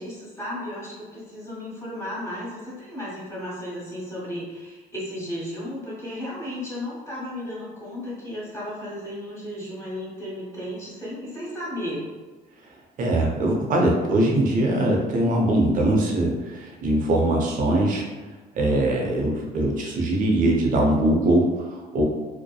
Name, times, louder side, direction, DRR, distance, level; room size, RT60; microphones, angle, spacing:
voice 1, 0.0-12.0, left 1 dB, 15° left, -7 dB, 1.1 m, -34 dB
voice 2, 13.0-18.0 18.6-22.0, right 1 dB, 50° right, 0 dB, 0.6 m, -22 dB
2.7 x 2.1 x 2.3 m, 1.3 s
cardioid pair, 110°, 17 cm